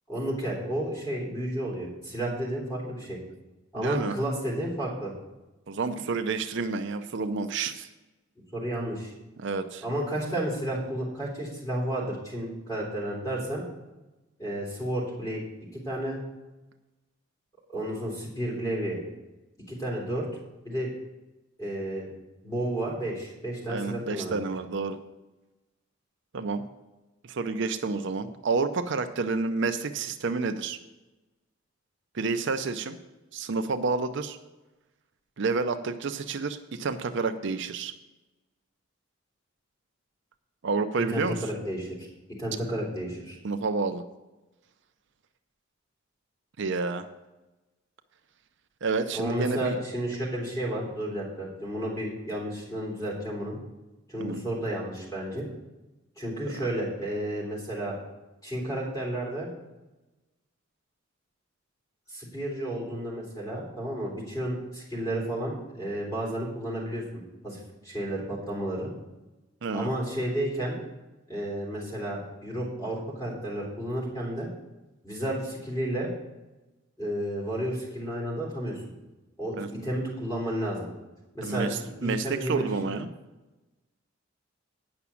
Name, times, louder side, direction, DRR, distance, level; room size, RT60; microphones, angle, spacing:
voice 1, 0.1-3.2 3.7-5.1 8.5-9.1 9.8-13.6 14.4-15.4 15.7-16.2 17.7-19.0 19.7-20.3 20.6-20.9 21.6-22.1 22.4-24.5 41.1-43.4 49.1-53.6 54.1-55.5 56.2-58.0 58.4-59.5 62.1-67.0 67.4-68.9 69.7-70.8 71.3-74.5 75.0-76.1 77.0-78.8 79.4-80.9 81.3-83.0, right 1 dB, 15° left, -3 dB, 3.5 m, -32 dB
voice 2, 3.8-4.1 5.7-7.9 9.4-9.8 23.7-25.0 26.3-26.6 27.2-30.8 32.1-33.0 33.3-34.4 35.4-37.9 40.6-41.4 43.4-44.0 46.6-47.1 48.8-49.8 54.2-54.4 56.5-56.6 69.6-69.9 79.6-79.7 81.4-83.1, right 4 dB, 60° right, 8 dB, 0.6 m, -29 dB
9.7 x 6.0 x 7.0 m, 1.1 s
head